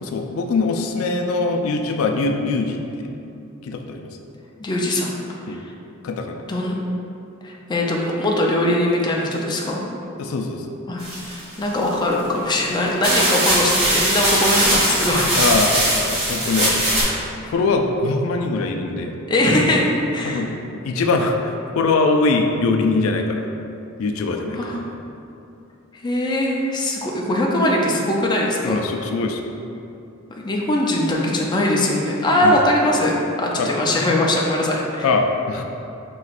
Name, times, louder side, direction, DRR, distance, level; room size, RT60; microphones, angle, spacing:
voice 1, 0.0-3.1 3.6-4.1 5.5-5.6 6.0-6.4 10.2-10.8 15.4-15.8 16.3-16.8 17.5-19.2 20.2-23.5 24.0-24.8 28.6-29.5 32.4-32.6 33.6-33.7 35.0-35.6, left 3 dB, 85° left, 4 dB, 0.3 m, -22 dB
voice 2, 4.6-5.2 5.5-5.6 6.5-6.8 7.4-9.8 10.9-15.4 19.3-20.5 24.5-24.8 26.0-28.8 30.4-35.1, left 1 dB, 20° left, -2 dB, 0.4 m, -21 dB
sound 1, 11.0-11.9 12.6-12.7 13.0-17.0, right 1 dB, 75° right, 1.4 m, -20 dB
5.6 x 3.0 x 2.4 m, 2.7 s
head